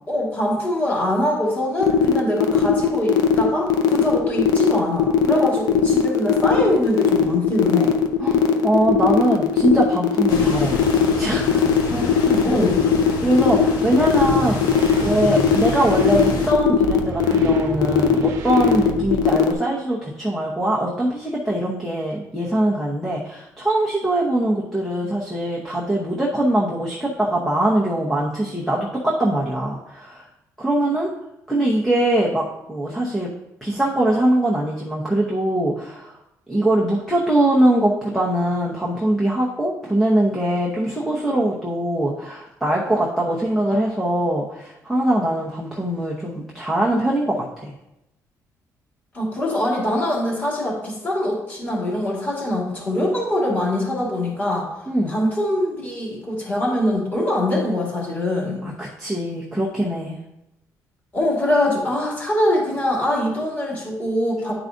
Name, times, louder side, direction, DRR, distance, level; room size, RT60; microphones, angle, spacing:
voice 1, 0.1-7.9 11.8-12.8 49.1-54.7 55.1-58.6 61.1-64.5, left 1 dB, 25° left, -5 dB, 2.4 m, -23 dB
sound 1, 1.8-19.5, left 8 dB, 70° left, 0.7 m, -18 dB
voice 2, 8.2-10.9 11.2-11.6 13.2-30.3 30.6-31.1 31.5-33.3 33.6-36.2 36.5-47.7 54.9-55.1 58.6-60.2, right 1 dB, ahead, -4 dB, 0.8 m, -22 dB
sound 2, 10.3-16.5, left 3 dB, 90° left, 1.1 m, -29 dB
sound 3, 14.2-19.5, right 4 dB, 55° right, 1.1 m, -32 dB
10.5 x 4.7 x 2.6 m, 0.86 s
cardioid pair, 165°, 7 cm